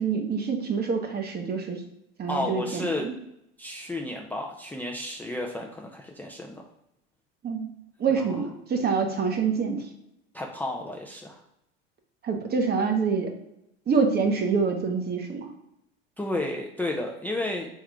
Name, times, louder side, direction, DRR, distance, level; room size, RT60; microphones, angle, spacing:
voice 1, 0.0-1.8 2.2-3.1 7.4-7.7 8.0-9.8 12.2-13.3 13.9-15.5, right 5 dB, 30° right, 4 dB, 1.0 m, -26 dB
voice 2, 2.3-3.1 3.6-6.6 8.1-8.4 10.3-11.4 16.2-17.7, left 2 dB, 5° left, 0 dB, 0.5 m, -32 dB
3.7 x 3.0 x 4.8 m, 0.81 s
hypercardioid pair, 100°, 32 cm